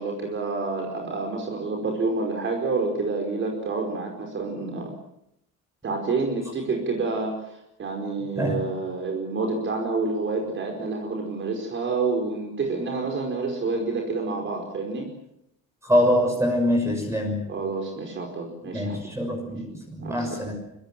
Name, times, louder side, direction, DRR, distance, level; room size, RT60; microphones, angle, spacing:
voice 1, 0.0-4.9 5.8-15.1 17.5-19.0 20.0-20.4, right 3 dB, 35° right, 2 dB, 5.0 m, -28 dB
voice 2, 15.8-17.5 18.7-20.5, equal, 10° right, 2 dB, 6.3 m, -24 dB
25.5 x 24.5 x 7.5 m, 0.79 s
cardioid pair, 155°, 36 cm